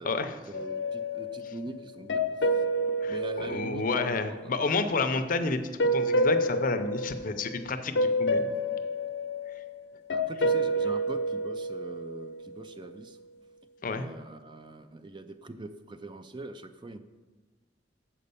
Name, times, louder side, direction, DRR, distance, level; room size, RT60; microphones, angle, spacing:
voice 1, 0.0-2.6 3.1-4.6 10.1-13.2 13.9-17.0, right 2 dB, 25° right, 9 dB, 0.4 m, -43 dB
sound 1, 0.5-4.4 5.8-7.7 8.0-12.5, equal, 85° left, 0.8 m, -29 dB
voice 2, 3.0-5.6 5.9-8.5 9.6-9.7 13.8-14.1, left 3 dB, 50° left, 9 dB, 0.6 m, -30 dB
7.2 x 5.4 x 6.9 m, 1.3 s
head